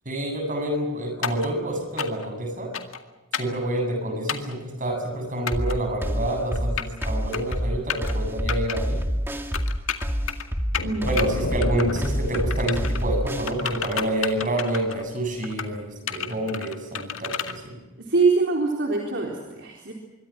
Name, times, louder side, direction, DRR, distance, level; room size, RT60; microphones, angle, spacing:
voice 1, 0.0-2.7 3.3-9.0 11.0-17.8, right 1 dB, 35° right, 4 dB, 7.9 m, -28 dB
sound 1, 1.2-1.5 2.0-2.3 2.7-3.0 3.3-3.6 4.3-4.5 5.5-5.8 6.5-7.1 7.3-7.6 7.9-8.1 8.5-8.8 9.5-10.4 10.7-11.2 11.6-12.1 12.3-13.0 13.5-15.0 15.4-15.7 16.1-17.5, left 7 dB, 65° left, 2.1 m, -30 dB
sound 2, 5.5-13.5, equal, 10° right, 2.1 m, -27 dB
sound 3, 10.8-14.5, left 1 dB, 80° left, 3.0 m, -33 dB
voice 2, 10.8-11.1 18.0-19.9, right 4 dB, 55° right, 0 dB, 4.0 m, -23 dB
25.5 x 24.0 x 6.1 m, 1.2 s
head